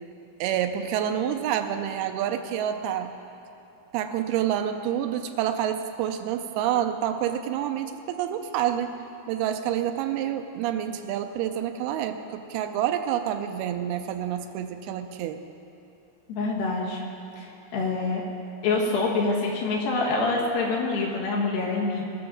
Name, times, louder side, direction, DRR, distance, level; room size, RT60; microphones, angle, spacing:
voice 1, 0.4-3.1 3.9-8.9 9.3-15.4, right 10 dB, 85° right, 7 dB, 2.5 m, -28 dB
voice 2, 16.3-17.0 17.4-18.2 18.6-22.0, left 3 dB, 70° left, -3 dB, 3.2 m, -26 dB
20.0 x 6.9 x 5.1 m, 2.7 s
omnidirectional pair, 4.5 m